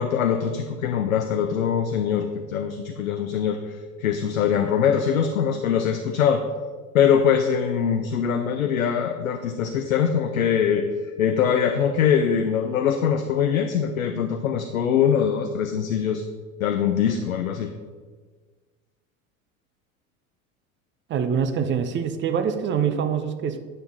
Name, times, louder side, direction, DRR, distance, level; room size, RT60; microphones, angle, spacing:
voice 1, 0.0-6.4 6.9-16.2 16.6-17.7, left 8 dB, 70° left, 6 dB, 0.7 m, -23 dB
voice 2, 21.1-23.6, right 7 dB, 25° right, 8 dB, 0.7 m, -24 dB
9.1 x 6.6 x 3.9 m, 1.5 s
figure-of-eight pair, 70°, 42 cm